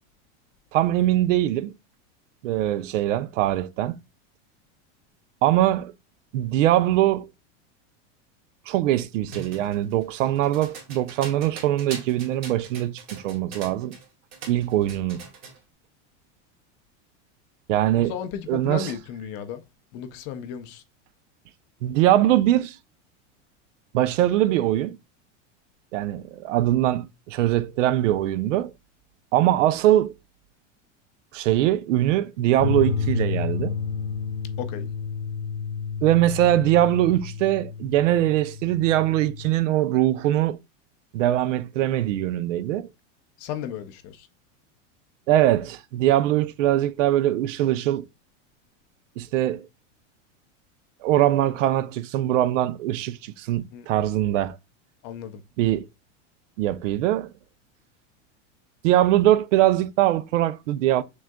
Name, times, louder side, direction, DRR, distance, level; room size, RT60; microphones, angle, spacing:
voice 1, 0.7-1.7 2.4-4.0 5.4-5.9 6.3-7.3 8.7-14.0 14.5-15.2 17.7-18.1 18.5-18.9 21.8-22.8 23.9-25.0 25.9-28.7 29.3-30.1 31.3-33.8 36.0-40.6 41.1-42.9 45.3-48.1 49.2-49.7 51.0-54.6 55.6-55.9 56.6-57.3 58.8-61.0, right 13 dB, 85° right, 0.6 m, -22 dB
sound 1, 9.3-14.1 14.3-15.6, right 4 dB, 35° right, 1.9 m, -40 dB
voice 2, 18.0-19.6 19.9-20.8 34.6-34.9 43.4-44.3 53.7-53.9 55.0-55.4, left 8 dB, 30° left, 0.4 m, -34 dB
sound 2, 32.6-39.5, left 6 dB, 80° left, 0.8 m, -30 dB
6.3 x 3.7 x 2.2 m
supercardioid pair, 165°, 37 cm